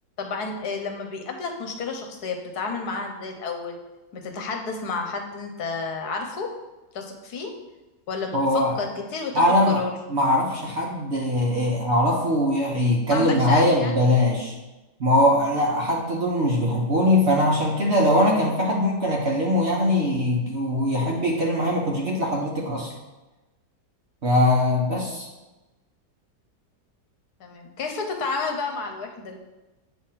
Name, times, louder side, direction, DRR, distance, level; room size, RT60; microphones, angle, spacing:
voice 1, 0.2-3.7 4.1-6.5 6.9-7.5 8.1-9.4 9.8-9.9 13.1-14.0 27.4-29.4, left 4 dB, 65° left, 3 dB, 1.4 m, -31 dB
voice 2, 8.3-8.8 9.3-9.8 10.1-14.5 15.0-22.9 24.2-25.3, left 1 dB, 40° right, -3 dB, 1.3 m, -21 dB
8.1 x 3.6 x 5.7 m, 1.1 s
omnidirectional pair, 1.9 m